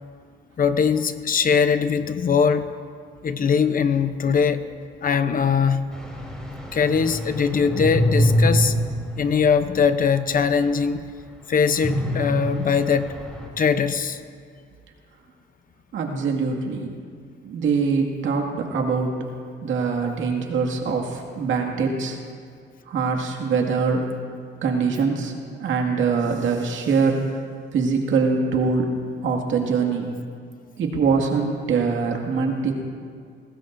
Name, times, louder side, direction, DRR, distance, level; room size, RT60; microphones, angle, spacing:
voice 1, 0.6-2.7 3.2-4.6 5.0-5.9 6.7-8.7 9.2-11.0 11.5-13.1 13.6-14.2, left 6 dB, 45° left, 10 dB, 0.8 m, -21 dB
sound 1, 5.9-10.2 10.6-10.7 11.8-13.5, equal, 5° left, 3.6 m, -25 dB
voice 2, 15.9-16.9 17.4-19.1 19.6-22.2 22.9-24.0 24.6-25.3 25.6-27.2 27.7-28.9 29.2-30.1 30.8-32.7, right 5 dB, 75° right, 1 dB, 2.2 m, -23 dB
22.5 x 18.5 x 2.7 m, 2.2 s
cardioid pair, 90°, 20 cm